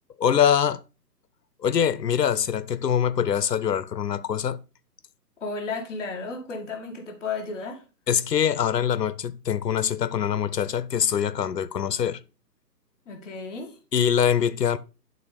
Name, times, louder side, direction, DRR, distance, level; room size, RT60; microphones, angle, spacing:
voice 1, 0.2-0.8 1.6-4.6 8.1-12.2 13.9-14.8, left 8 dB, 75° left, 0.7 m, -23 dB
voice 2, 5.4-7.8 13.0-13.8, left 4 dB, ahead, 0.7 m, -33 dB
9.1 x 3.9 x 5.1 m
figure-of-eight pair, 145°, 50 cm